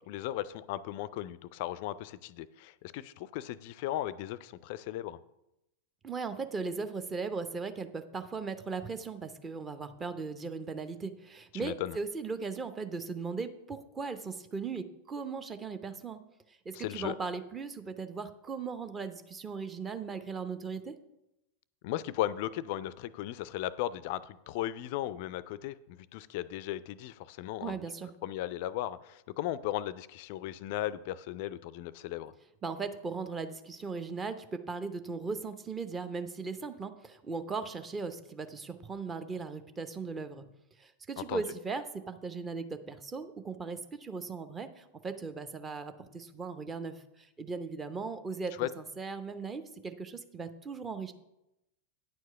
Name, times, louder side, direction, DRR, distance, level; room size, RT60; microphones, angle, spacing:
voice 1, 0.1-5.2 11.6-12.0 16.7-17.1 21.8-25.8 26.1-27.8 28.2-32.3 41.3-41.4 48.6-48.7, left 13 dB, 50° left, 18 dB, 0.4 m, -36 dB
voice 2, 6.0-16.2 16.6-20.9 27.6-28.1 32.6-40.5 40.8-51.1, right 4 dB, 20° right, 10 dB, 0.7 m, -38 dB
9.4 x 4.7 x 6.6 m, 0.90 s
figure-of-eight pair, 90°, 0 cm